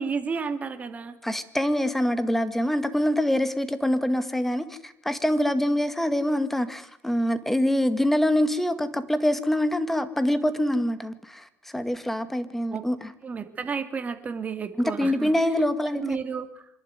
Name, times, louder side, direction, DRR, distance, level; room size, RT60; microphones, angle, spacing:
voice 1, 0.0-1.1 12.7-12.8 13.2-15.3 15.9-16.6, right 5 dB, 30° right, 2.6 m, -32 dB
voice 2, 1.2-11.5 11.7-13.1 14.8-16.2, left 1 dB, 5° left, 1.9 m, -25 dB
25.0 x 11.5 x 9.7 m
cardioid pair, 110°, 5 cm